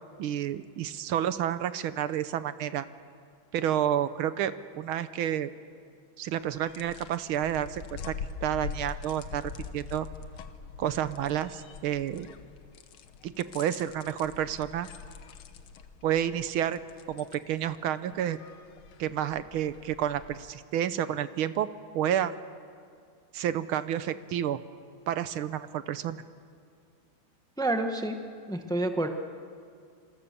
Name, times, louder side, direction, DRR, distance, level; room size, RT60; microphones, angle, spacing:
voice 1, 0.2-2.9 3.5-5.5 6.2-8.2 8.4-10.1 10.8-12.3 13.2-14.9 16.0-16.8 17.1-18.4 19.0-21.7 21.9-22.4 23.3-24.6 25.1-26.2, right 10 dB, 80° right, 13 dB, 1.7 m, -30 dB
sound 1, 6.4-20.5, left 6 dB, 85° left, 2.0 m, -44 dB
voice 2, 27.6-28.2 28.5-29.1, right 2 dB, ahead, 5 dB, 1.1 m, -28 dB
27.0 x 27.0 x 6.8 m, 2.2 s
omnidirectional pair, 2.3 m